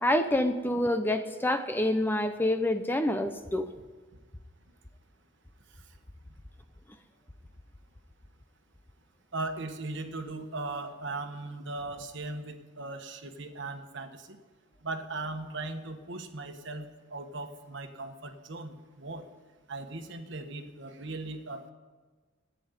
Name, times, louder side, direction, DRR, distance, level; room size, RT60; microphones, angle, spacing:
voice 1, 0.0-3.7, left 1 dB, 10° left, 8 dB, 0.7 m, -27 dB
voice 2, 9.3-14.4 14.8-16.8 17.1-19.2 19.7-21.7, right 2 dB, 60° right, 6 dB, 1.4 m, -38 dB
14.5 x 9.6 x 9.6 m, 1.3 s
head